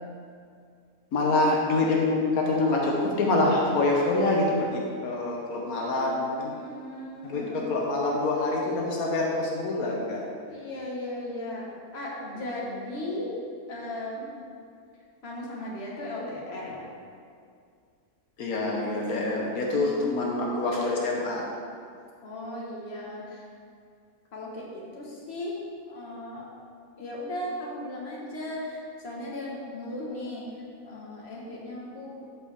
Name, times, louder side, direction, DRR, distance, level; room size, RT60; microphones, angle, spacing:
voice 1, 1.1-6.5 7.2-10.3 18.4-21.4, left 2 dB, 85° left, -2 dB, 1.5 m, -26 dB
voice 2, 6.5-7.7 10.5-11.6 11.9-13.3 13.7-14.3 15.2-16.9 19.7-20.3 22.2-23.4 24.3-25.6 25.9-26.5 27.0-32.2, left 1 dB, 50° left, -4 dB, 1.6 m, -37 dB
13.0 x 4.8 x 3.4 m, 2.3 s
omnidirectional pair, 1.5 m